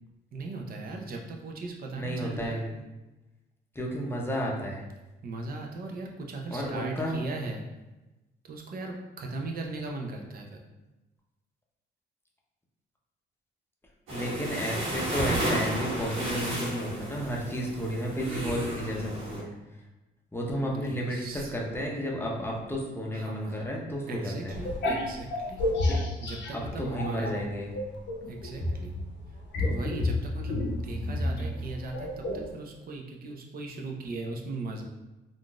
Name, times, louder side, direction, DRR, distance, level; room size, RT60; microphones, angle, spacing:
voice 1, 0.3-2.6 5.2-7.6 8.4-10.6 20.7-21.5 23.1-23.6 24.1-25.6 26.2-27.5 28.3-28.9 29.6-32.2 32.5-34.8, right 2 dB, 50° right, 2 dB, 0.6 m, -38 dB
voice 2, 1.9-2.7 3.7-4.8 6.5-7.2 14.1-19.5 20.3-24.6 25.7-26.0 26.5-27.7, equal, 10° left, -2 dB, 0.6 m, -32 dB
sound 1, 14.1-19.4, right 1 dB, 90° right, 1.0 m, -32 dB
sound 2, 24.5-27.3 27.7-32.5, left 1 dB, 65° left, 0.6 m, -30 dB
3.6 x 2.5 x 2.3 m, 1.1 s
cardioid pair, 90°, 20 cm